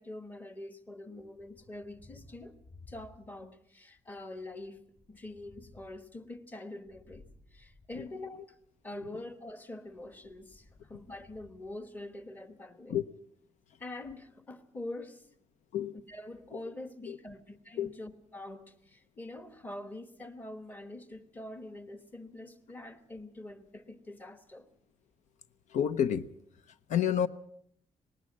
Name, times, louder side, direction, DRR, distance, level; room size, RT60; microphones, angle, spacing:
voice 1, 0.0-2.6 2.9-4.8 5.1-8.6 8.8-13.0 13.8-15.3 16.1-24.7, left 2 dB, 15° left, 11 dB, 1.1 m, -45 dB
Thunder, 1.2-3.6 3.9-8.7 9.8-12.4, left 3 dB, 40° left, 5.4 m, -59 dB
voice 2, 25.7-26.3 26.9-27.3, left 9 dB, 80° left, 14 dB, 0.8 m, -28 dB
19.5 x 18.5 x 7.4 m, 0.68 s
wide cardioid pair, 175°, 12 cm